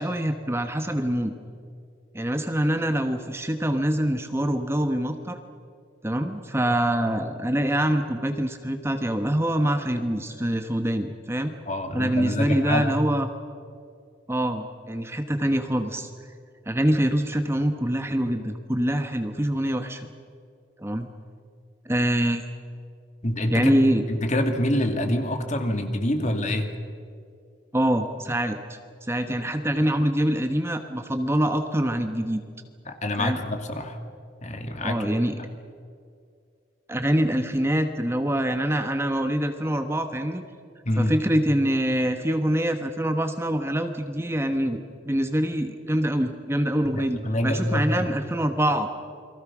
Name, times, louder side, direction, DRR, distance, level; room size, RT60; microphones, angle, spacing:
voice 1, 0.0-1.3 2.1-5.4 6.0-11.5 11.9-13.3 14.3-16.1 16.7-20.1 20.8-21.1 21.8-22.4 23.5-24.1 27.7-32.4 33.2-33.4 34.8-35.4 36.9-40.4 41.0-48.9, right 1 dB, 15° right, 6 dB, 1.1 m, -25 dB
voice 2, 11.7-12.9 23.2-26.7 32.9-34.0 34.4-35.1 40.8-41.1 46.9-48.1, left 1 dB, 35° left, 6 dB, 2.2 m, -26 dB
29.0 x 23.0 x 6.1 m, 2.3 s
head